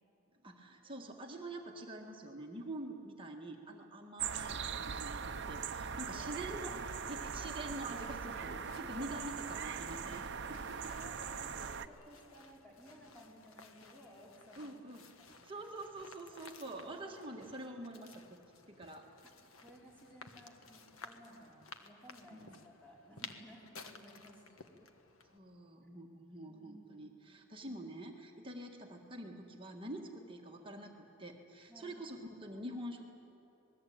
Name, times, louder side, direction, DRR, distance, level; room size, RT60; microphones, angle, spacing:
voice 1, 0.4-10.9 14.6-15.0 15.4-18.4 18.7-19.1 22.3-22.6 25.3-30.9 31.2-33.0, right 1 dB, 25° right, 1 dB, 1.7 m, -46 dB
sound 1, 4.2-11.9, right 6 dB, 55° right, 0.8 m, -41 dB
voice 2, 5.7-6.4 8.8-10.0 10.9-14.7 15.2-15.6 16.6-17.0 19.6-24.7 26.5-27.1 27.5-27.8 31.7-32.0, equal, 5° left, -4 dB, 4.9 m, -57 dB
sound 2, 6.8-25.4, left 4 dB, 80° left, 1.6 m, -56 dB
26.0 x 20.5 x 8.7 m, 3.0 s
head